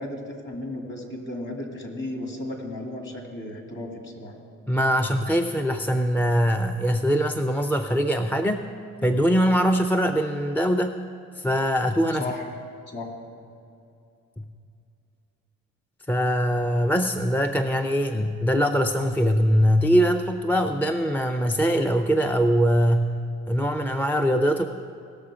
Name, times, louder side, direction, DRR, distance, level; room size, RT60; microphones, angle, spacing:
voice 1, 0.0-4.4 12.2-12.5 12.9-13.1, left 1 dB, 40° left, 2 dB, 2.4 m, -34 dB
voice 2, 4.7-8.6 9.0-11.0 11.4-12.3 16.1-23.2 23.5-24.6, equal, 5° left, 6 dB, 0.4 m, -22 dB
18.0 x 6.8 x 4.9 m, 2.5 s
cardioid pair, 90°, 30 cm